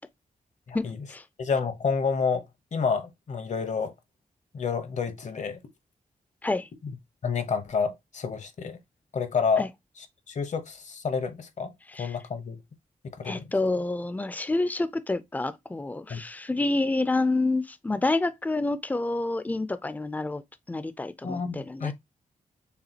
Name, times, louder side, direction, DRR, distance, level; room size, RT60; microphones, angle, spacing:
voice 1, 0.7-1.2 6.4-6.7 9.6-9.7 11.9-12.2 13.2-20.4 20.7-21.9, left 2 dB, 10° left, 0.4 m, -28 dB
voice 2, 1.4-2.5 2.7-3.9 4.5-5.6 6.8-6.9 7.2-8.8 9.1-9.7 10.3-11.7 12.0-12.6 13.2-13.5 16.1-16.2 21.2-21.9, left 5 dB, 55° left, 0.9 m, -29 dB
6.9 x 2.3 x 2.8 m
cardioid pair, 90°, 14 cm